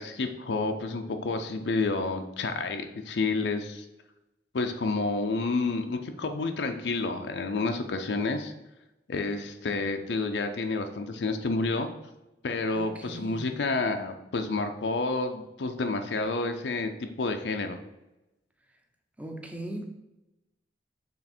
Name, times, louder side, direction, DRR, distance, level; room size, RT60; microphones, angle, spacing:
voice 1, 0.0-3.9 4.5-8.5 9.1-11.9 12.4-16.9 17.2-17.8, left 3 dB, 80° left, 6 dB, 0.5 m, -29 dB
voice 2, 12.7-13.6 19.2-19.9, right 1 dB, 10° right, 3 dB, 0.6 m, -39 dB
6.3 x 3.5 x 4.3 m, 0.96 s
head